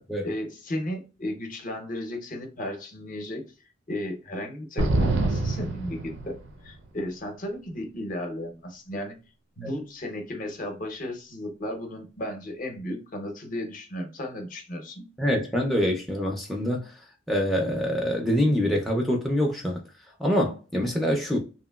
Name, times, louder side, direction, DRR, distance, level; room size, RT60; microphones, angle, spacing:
voice 1, 0.2-3.4 3.9-6.4 6.6-9.2 9.6-15.0, left 1 dB, 45° left, 0.6 m, -34 dB
sound 1, 4.8-6.7, right 2 dB, 65° right, 0.5 m, -26 dB
voice 2, 15.2-16.9 17.3-19.8 20.2-21.4, equal, ahead, 0.4 m, -25 dB
2.8 x 2.6 x 2.2 m
head